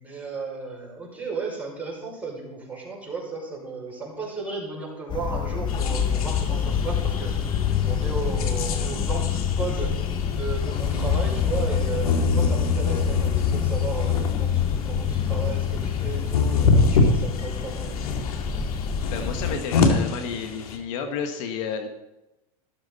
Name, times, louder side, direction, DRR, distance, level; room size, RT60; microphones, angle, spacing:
voice 1, 0.0-18.0, right 4 dB, 10° right, -3 dB, 5.8 m, -34 dB
sound 1, 5.1-19.6, left 8 dB, 25° left, 1.0 m, -26 dB
sound 2, 5.7-20.8, left 3 dB, 80° left, 2.1 m, -27 dB
voice 2, 19.1-21.9, left 6 dB, 55° left, 6 dB, 1.4 m, -31 dB
14.0 x 12.5 x 4.1 m, 0.99 s
hypercardioid pair, 115°, 19 cm